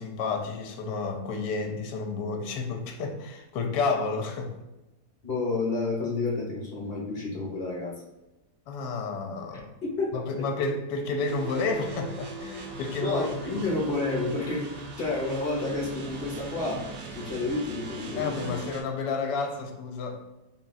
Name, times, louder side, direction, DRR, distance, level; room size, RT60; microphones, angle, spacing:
voice 1, 0.0-4.5 8.7-9.7 10.1-13.7 18.2-20.2, left 4 dB, 75° left, 3 dB, 1.2 m, -31 dB
voice 2, 5.2-7.9 9.8-10.2 13.0-14.6 15.0-16.8 17.1-18.7, left 3 dB, 40° left, -4 dB, 0.9 m, -30 dB
sound 1, 11.3-18.8, right 2 dB, 90° right, 1.4 m, -40 dB
3.8 x 2.3 x 4.0 m, 0.99 s
omnidirectional pair, 1.9 m